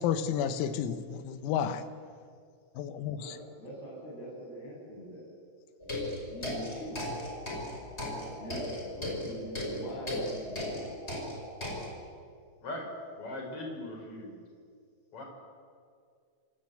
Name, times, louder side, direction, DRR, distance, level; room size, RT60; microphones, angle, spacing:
voice 1, 0.0-1.8 2.8-3.3, left 8 dB, 90° left, 10 dB, 4.0 m, -31 dB
voice 2, 3.1-5.3 6.3-7.1 8.4-11.0, equal, 50° left, -4 dB, 9.8 m, -43 dB
sound 1, 5.8-11.9, left 1 dB, 10° left, 5.1 m, -37 dB
voice 3, 13.2-14.3 15.1-15.2, left 1 dB, 30° left, 2 dB, 5.7 m, -39 dB
27.5 x 25.0 x 8.0 m, 2.2 s
omnidirectional pair, 6.0 m